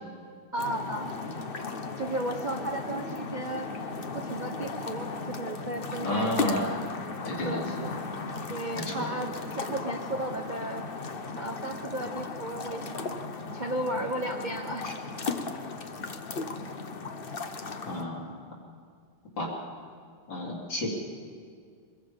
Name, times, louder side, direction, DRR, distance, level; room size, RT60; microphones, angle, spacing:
voice 1, 0.5-1.1 2.0-3.7 4.1-6.8 7.4-8.0 8.5-10.8 11.4-13.2 13.5-14.9, right 1 dB, 70° right, 3 dB, 0.4 m, -34 dB
sound 1, 0.6-18.0, left 4 dB, 45° left, 0.7 m, -36 dB
voice 2, 6.0-6.7 7.3-7.9 8.7-9.1 14.8-14.9 17.8-18.3 19.4-19.5 20.3-20.9, left 1 dB, 60° left, -4 dB, 4.0 m, -31 dB
24.5 x 21.5 x 5.2 m, 2.1 s
omnidirectional pair, 2.3 m